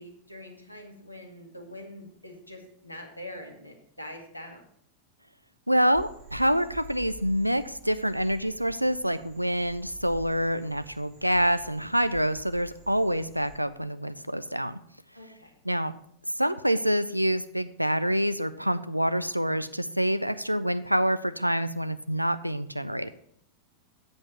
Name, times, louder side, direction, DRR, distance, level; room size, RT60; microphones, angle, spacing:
voice 1, 0.0-4.6 15.1-15.5, left 1 dB, 85° left, 3 dB, 1.5 m, -44 dB
voice 2, 5.7-14.8 15.6-15.9 16.4-23.1, equal, 90° right, 13 dB, 0.4 m, -26 dB
Frog, 5.9-13.5, right 1 dB, 40° right, 3.3 m, -49 dB
7.7 x 5.3 x 6.6 m, 0.69 s
figure-of-eight pair, 90°, 0 cm